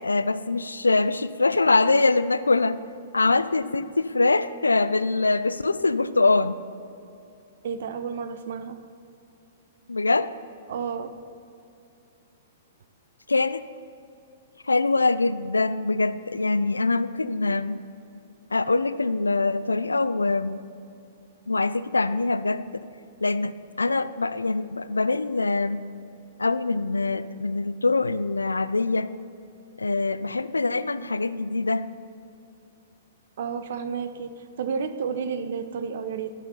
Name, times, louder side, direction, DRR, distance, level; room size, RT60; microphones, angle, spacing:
voice 1, 0.0-2.8 3.1-6.6 9.9-10.3 13.3-13.6 14.7-17.8 18.5-20.6 21.5-22.8 23.2-25.8 26.4-29.1 29.8-31.9, left 3 dB, 90° left, 15 dB, 0.4 m, -23 dB
voice 2, 7.6-8.8 10.7-11.1 33.4-36.3, right 6 dB, 60° right, 10 dB, 0.7 m, -31 dB
10.0 x 7.3 x 5.4 m, 2.7 s
hypercardioid pair, 115°, 0 cm